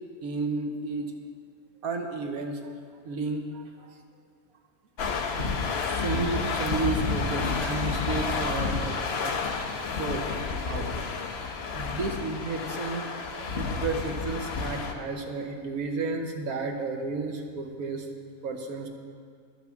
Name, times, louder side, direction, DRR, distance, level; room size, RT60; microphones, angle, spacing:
voice 1, 0.2-1.1 1.8-2.7 3.0-3.9 5.4-10.9 11.2-18.1 18.4-18.9, right 3 dB, 80° right, 3 dB, 1.4 m, -33 dB
sound 1, 5.0-14.9, left 4 dB, 55° left, 0.9 m, -30 dB
11.5 x 6.0 x 7.1 m, 2.1 s
omnidirectional pair, 1.5 m